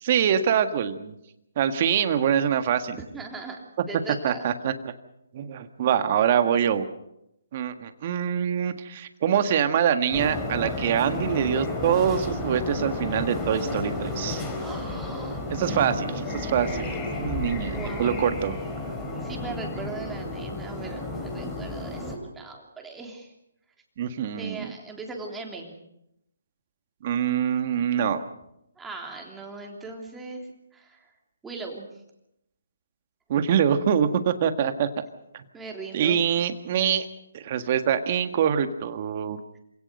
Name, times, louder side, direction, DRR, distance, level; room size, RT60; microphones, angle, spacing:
voice 1, 0.0-1.1 1.5-3.0 4.2-4.9 5.3-6.8 7.5-14.4 15.5-18.6 24.0-24.7 27.0-28.2 33.3-34.9 35.3-35.4 35.9-37.1 37.3-39.4, right 8 dB, 40° right, 9 dB, 1.7 m, -24 dB
voice 2, 2.9-3.6 3.9-4.5 14.6-15.4 15.7-17.0 17.7-18.3 19.2-23.3 24.4-25.7 28.8-30.4 30.7-31.0 31.4-31.9 35.5-36.2 37.6-37.7, right 3 dB, 10° right, 1 dB, 3.5 m, -39 dB
sound 1, 10.1-22.2, left 2 dB, 15° left, 4.3 m, -32 dB
27.0 x 17.5 x 6.7 m, 0.83 s
hypercardioid pair, 150°, 0 cm